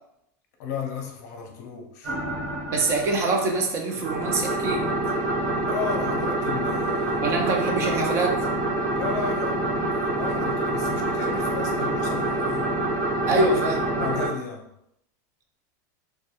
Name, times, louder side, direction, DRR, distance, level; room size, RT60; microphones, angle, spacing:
voice 1, 0.6-2.2 5.6-7.4 7.8-8.2 8.9-12.7 13.3-13.4 14.0-14.7, left 6 dB, 65° left, 3 dB, 0.6 m, -34 dB
sound 1, 2.0-3.5 3.9-14.3, right 2 dB, 45° right, 1.0 m, -26 dB
voice 2, 2.7-5.0 7.2-8.4 13.3-13.8, right 3 dB, 25° right, 2 dB, 0.3 m, -24 dB
2.3 x 2.2 x 2.8 m, 0.78 s
supercardioid pair, 165°, 10 cm